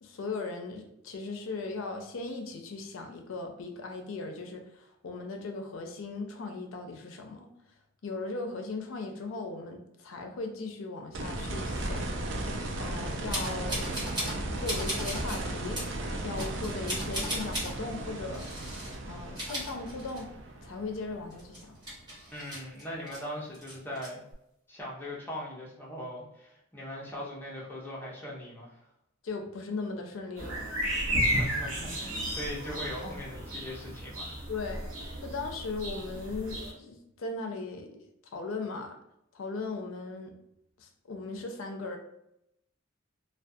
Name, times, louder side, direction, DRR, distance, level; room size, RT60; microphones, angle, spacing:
voice 1, 0.0-7.5 8.0-12.1 12.8-13.9 14.6-15.8 16.2-18.4 19.1-20.3 20.6-21.7 29.2-30.6 30.9-31.3 34.5-34.8 35.2-38.9 39.3-40.3 40.8-42.0, left 3 dB, 70° left, 5 dB, 0.4 m, -38 dB
sound 1, 11.1-22.0 24.3-24.4, right 1 dB, 60° right, 0.4 m, -36 dB
sound 2, 13.3-14.4 14.6-15.4 15.7-15.9 16.4-17.7 18.3-18.9 19.2-20.4 20.8-20.9 21.3-23.2 23.5-24.1, equal, 20° right, 1.0 m, -36 dB
voice 2, 22.3-24.2 24.7-28.8 31.2-34.3, left 1 dB, 10° left, -5 dB, 0.6 m, -40 dB
sound 3, 30.4-36.7, equal, 80° right, 0.8 m, -33 dB
2.3 x 2.2 x 2.6 m, 0.81 s
head